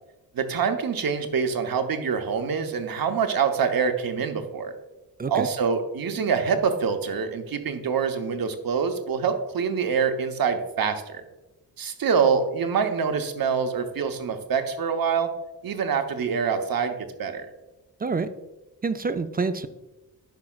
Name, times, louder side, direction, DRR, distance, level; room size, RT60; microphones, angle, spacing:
voice 1, 0.3-4.7 5.3-11.2 11.8-15.3 15.6-17.5, right 6 dB, 55° right, 7 dB, 0.9 m, -25 dB
voice 2, 18.0-18.3 18.8-19.7, right 4 dB, 25° right, 11 dB, 0.4 m, -27 dB
10.5 x 4.8 x 2.3 m, 1.0 s
cardioid pair, 55°, 42 cm